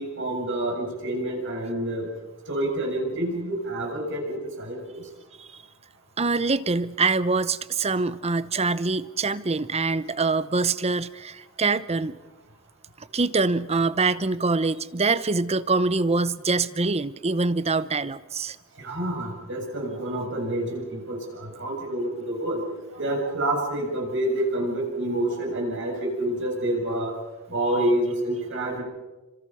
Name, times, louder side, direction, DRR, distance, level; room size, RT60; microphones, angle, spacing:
voice 1, 0.0-2.1 2.5-5.0 18.8-22.6 22.9-27.1 27.5-28.8, right 1 dB, 60° right, 0 dB, 7.3 m, -28 dB
voice 2, 6.2-12.2 13.0-18.6, right 3 dB, 30° right, 16 dB, 0.7 m, -24 dB
29.0 x 26.0 x 5.7 m, 1.1 s
head